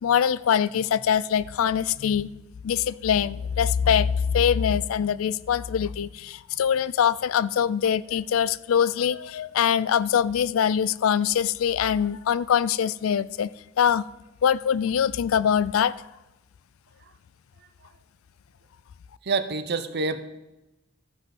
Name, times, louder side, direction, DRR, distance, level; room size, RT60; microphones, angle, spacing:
voice 1, 0.0-2.3 2.6-13.5 13.8-14.0 14.4-15.9, left 8 dB, 75° left, 18 dB, 0.4 m, -23 dB
voice 2, 19.2-20.2, right 3 dB, 50° right, 11 dB, 0.7 m, -27 dB
13.5 x 5.4 x 5.9 m, 0.99 s
head